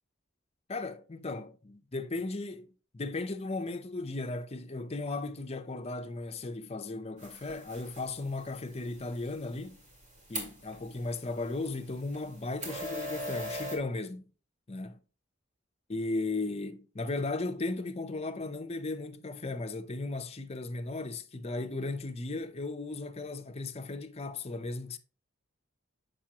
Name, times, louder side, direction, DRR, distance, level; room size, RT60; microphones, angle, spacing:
voice 1, 0.7-9.8 10.3-14.3 14.7-15.0 15.9-25.0, left 2 dB, 30° left, 0.6 m, -36 dB
sound 1, 7.2-13.8, equal, 40° right, 2.0 m, -42 dB
7.2 x 5.4 x 2.8 m
head